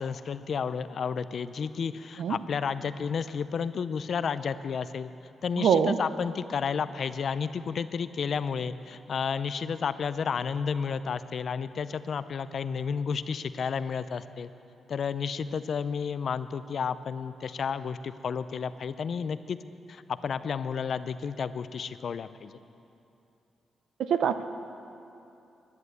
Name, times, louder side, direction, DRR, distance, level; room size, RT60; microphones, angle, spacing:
voice 1, 0.0-5.1 5.4-14.5 14.9-19.6 19.9-22.6, left 6 dB, 60° left, 13 dB, 0.5 m, -31 dB
voice 2, 5.6-6.0 24.1-24.5, right 7 dB, 80° right, 10 dB, 0.6 m, -24 dB
11.0 x 10.5 x 7.9 m, 2.7 s
cardioid pair, 80°, 0 cm